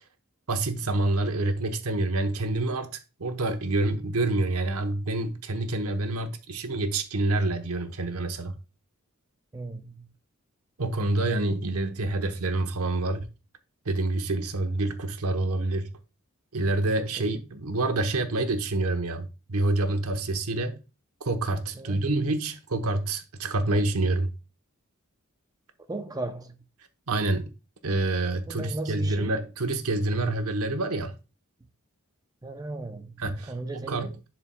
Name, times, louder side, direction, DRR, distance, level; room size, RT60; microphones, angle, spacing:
voice 1, 0.5-2.9 3.2-8.6 10.8-13.3 13.8-15.9 16.5-20.8 21.2-24.3 27.1-27.5 27.8-31.1 33.2-34.1, right 2 dB, 90° right, 0.9 m, -27 dB
voice 2, 9.5-10.1 16.8-17.2 21.7-22.1 25.9-26.5 28.5-29.4 32.4-33.1 33.4-34.1, right 2 dB, 15° right, 0.5 m, -36 dB
11.0 x 4.4 x 2.2 m
head